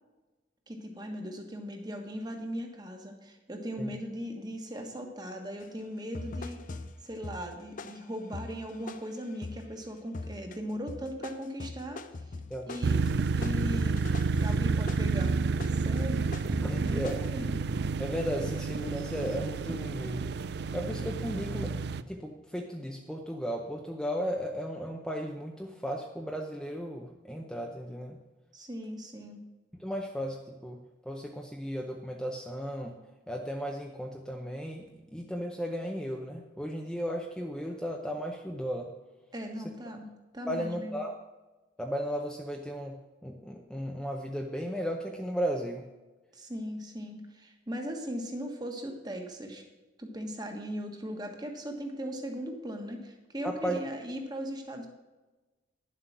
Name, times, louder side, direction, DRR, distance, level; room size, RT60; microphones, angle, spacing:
voice 1, 0.7-12.3 12.7-13.0 13.4-14.0 14.4-15.4 15.7-16.2 16.7-17.5 28.5-29.4 39.3-40.1 40.3-41.0 46.3-49.6 50.0-54.9, equal, 20° right, 3 dB, 1.5 m, -38 dB
sound 1, 5.6-5.7 6.1-9.7 10.1-10.6 10.9-17.3, left 3 dB, 45° left, 0.6 m, -42 dB
sound 2, 12.8-22.0, right 4 dB, 60° right, 0.4 m, -30 dB
voice 2, 16.6-17.3 18.0-20.3 20.7-21.7 22.1-28.2 29.8-33.0 33.3-38.9 40.5-41.1 41.8-43.0 43.2-45.8 53.4-53.8, equal, 5° left, 1 dB, 0.7 m, -35 dB
10.5 x 7.7 x 6.0 m, 1.2 s
head